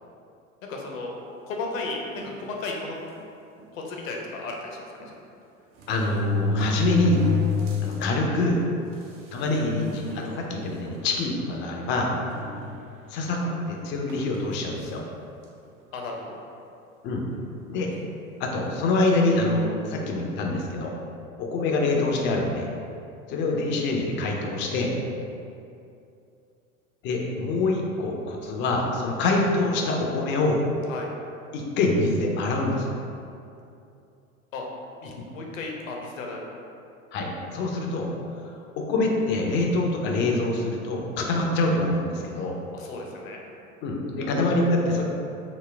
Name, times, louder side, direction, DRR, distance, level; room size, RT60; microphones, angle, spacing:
voice 1, 0.7-1.1 1.5-3.0 3.7-4.8 13.4-13.5 15.9-16.4 30.9-31.1 34.5-34.7 35.0-36.4 42.7-43.4, left 3 dB, 70° left, 0 dB, 0.7 m, -34 dB
sound 1, 2.2-2.4 3.2-3.3 3.6-3.7 5.0-5.1 5.8-8.0 8.5-8.6 9.4-9.5 9.9-10.3 10.9-11.0 12.3-13.1 14.1-14.4, left 3 dB, 35° right, 0.5 m, -28 dB
voice 2, 5.9-7.2 7.8-8.6 9.3-12.1 13.1-13.4 13.7-15.0 17.0-17.2 17.7-17.9 18.4-20.9 21.4-22.7 23.3-24.9 27.0-30.6 31.5-33.0 37.1-38.1 38.8-42.6 43.8-45.0, left 2 dB, 30° left, 0 dB, 0.4 m, -25 dB
4.0 x 2.1 x 3.2 m, 2.6 s
figure-of-eight pair, 85°, 41 cm